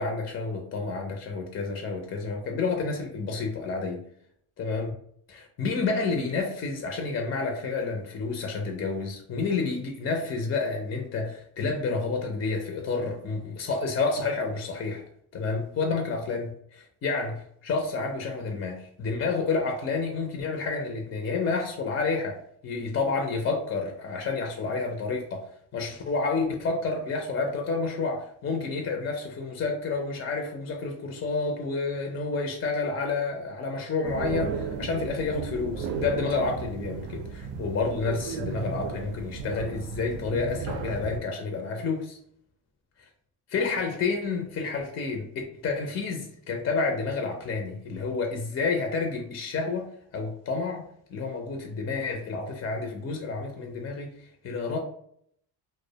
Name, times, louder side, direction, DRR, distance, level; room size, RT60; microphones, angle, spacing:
voice 1, 0.0-4.0 4.6-4.9 5.3-15.0 15.3-22.4 22.6-42.2 43.5-50.8 51.1-54.8, left 4 dB, 30° left, 2 dB, 0.4 m, -29 dB
sound 1, 34.0-41.2, right 5 dB, 75° right, 0.6 m, -34 dB
2.2 x 2.1 x 2.7 m, 0.67 s
cardioid pair, 105°, 44 cm